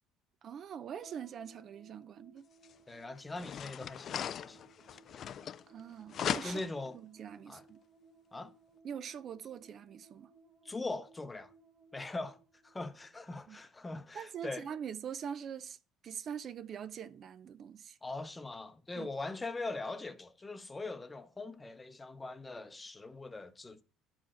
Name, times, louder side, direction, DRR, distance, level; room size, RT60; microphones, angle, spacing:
voice 1, 0.4-2.4 5.7-6.6 6.9-7.8 8.8-10.3 13.5-13.6 14.1-15.8 16.0-18.0 19.0-19.1, right 8 dB, 45° right, 0.4 m, -43 dB
sound 1, 1.0-13.5, right 3 dB, 25° right, 1.1 m, -63 dB
sound 2, 2.6-2.7 3.3-5.8 6.1-6.9, left 9 dB, 45° left, 0.3 m, -38 dB
voice 2, 2.9-4.6 4.9-5.0 6.4-7.0 7.5-7.6 8.3-8.5 10.6-11.5 11.9-12.4 12.6-14.7 18.0-23.8, left 2 dB, 15° left, 0.8 m, -41 dB
11.5 x 4.8 x 4.3 m
cardioid pair, 125°, 0 cm